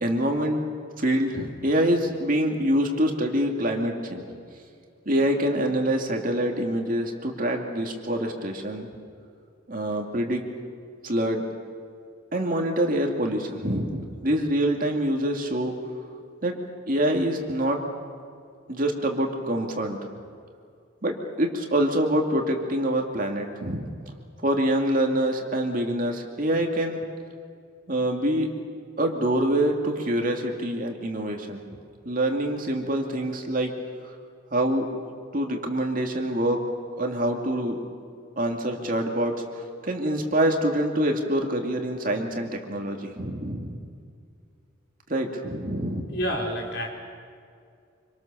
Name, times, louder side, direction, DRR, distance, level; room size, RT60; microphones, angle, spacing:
voice 1, 0.0-0.6 1.0-4.2 5.1-8.9 9.7-10.4 11.0-11.4 12.3-15.7 16.4-16.6 16.9-17.8 18.7-20.0 21.0-23.9 24.4-27.0 27.9-28.5 29.0-31.7 32.0-33.7 34.5-36.6 37.0-37.8 38.4-39.3 39.8-43.8 45.1-46.2, right 1 dB, 40° right, 2 dB, 2.5 m, -25 dB
voice 2, 46.1-46.9, equal, 60° left, 0 dB, 4.2 m, -28 dB
26.5 x 25.0 x 6.8 m, 2.3 s
head